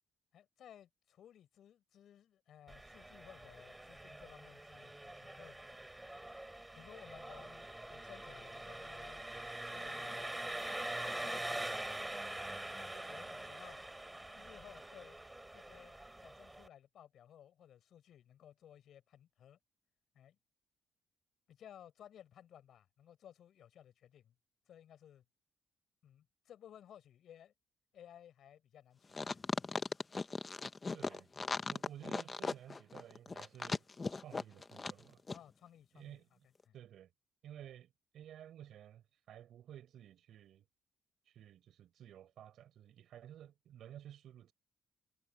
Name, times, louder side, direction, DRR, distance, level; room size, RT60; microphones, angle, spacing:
voice 1, 0.3-5.6 6.7-9.2 9.7-10.6 11.0-11.7 12.7-13.8 14.3-15.2 15.5-19.6 20.1-20.4 21.5-24.3 24.7-25.2 26.0-27.5 27.9-29.4 35.3-36.2 36.7-36.8, left 10 dB, 70° left, 7.7 m, -58 dB
Engine, 2.7-16.7, right 1 dB, 10° right, 5.7 m, -44 dB
sound 1, 29.1-35.0 35.3-35.4, left 4 dB, 30° left, 1.1 m, -38 dB
voice 2, 30.9-31.3 31.7-35.2 35.9-36.3 36.7-37.1 37.4-40.6 41.3-44.5, right 11 dB, 75° right, 5.0 m, -54 dB
cardioid pair, 90°, 0 cm